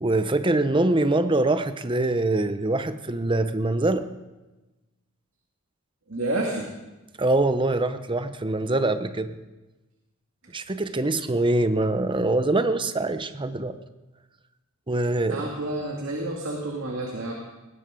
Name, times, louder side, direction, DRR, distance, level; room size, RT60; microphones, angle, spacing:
voice 1, 0.0-4.1 7.2-9.3 10.5-13.8 14.9-15.4, right 2 dB, 25° right, 10 dB, 0.8 m, -24 dB
voice 2, 6.1-6.7 15.3-17.3, right 2 dB, 65° right, -1 dB, 2.3 m, -29 dB
20.0 x 17.0 x 3.8 m, 1.1 s
head